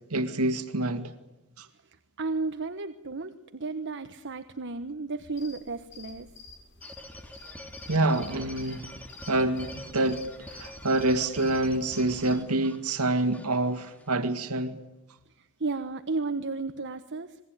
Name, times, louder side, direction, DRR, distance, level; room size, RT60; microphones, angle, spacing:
voice 1, 0.1-1.1 1.6-1.7 7.9-8.9 9.3-10.2 10.5-14.8, right 2 dB, 90° right, 2.1 m, -27 dB
voice 2, 1.8-6.3 15.4-17.4, right 3 dB, 55° right, 1.3 m, -33 dB
sound 1, 5.3-12.3, left 5 dB, 55° left, 7.9 m, -50 dB
sound 2, 6.8-14.1, left 1 dB, 5° left, 3.0 m, -46 dB
27.5 x 21.0 x 9.2 m
head